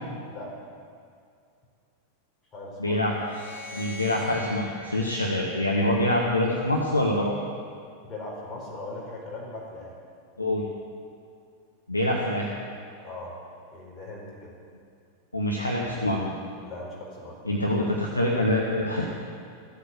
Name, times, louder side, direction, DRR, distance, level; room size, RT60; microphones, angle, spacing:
voice 1, 0.3-0.7 2.5-3.0 8.0-9.9 13.0-13.4 13.7-14.5 16.6-17.4, left 2 dB, 25° left, -3 dB, 4.6 m, -39 dB
voice 2, 2.8-3.1 3.7-7.3 10.4-10.6 11.9-12.5 15.3-16.3 17.5-19.1, left 1 dB, 85° left, -1 dB, 1.3 m, -25 dB
sound 1, 3.1-6.4, left 1 dB, 60° left, 4.1 m, -43 dB
15.0 x 8.3 x 8.3 m, 2.3 s
figure-of-eight pair, 90°, 0 cm